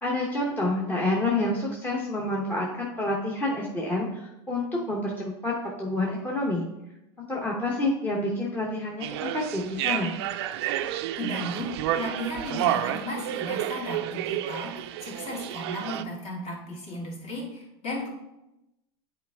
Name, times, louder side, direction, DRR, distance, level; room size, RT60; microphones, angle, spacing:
voice 1, 0.0-6.6 7.3-10.1, left 2 dB, 15° left, -3 dB, 1.0 m, -28 dB
sound 1, 9.0-16.0, right 12 dB, 75° right, 0.5 m, -30 dB
voice 2, 11.2-18.1, left 1 dB, 45° left, -2 dB, 2.5 m, -35 dB
8.2 x 4.4 x 3.5 m, 0.91 s
supercardioid pair, 115°, 14 cm